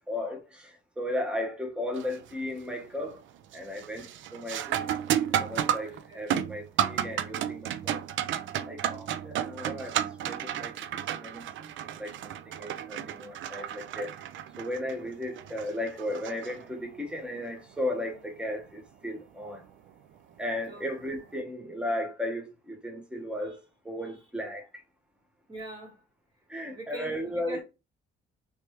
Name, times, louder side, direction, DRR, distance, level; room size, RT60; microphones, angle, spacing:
voice 1, 0.1-3.2 3.5-4.9 5.3-8.0 8.6-10.7 11.2-14.1 14.6-19.6 20.4-24.8 26.5-27.6, left 1 dB, 5° right, 1.0 m, -35 dB
sound 1, 1.9-2.3 2.7-3.2 3.5-17.0 19.5-19.6 20.5-20.7, right 10 dB, 75° right, 0.4 m, -32 dB
voice 2, 5.8-6.2 18.0-18.2 20.6-20.9 24.0-24.2 25.5-26.0 26.7-27.6, right 1 dB, 25° right, 1.6 m, -42 dB
3.2 x 3.2 x 3.1 m
cardioid pair, 90°, 20 cm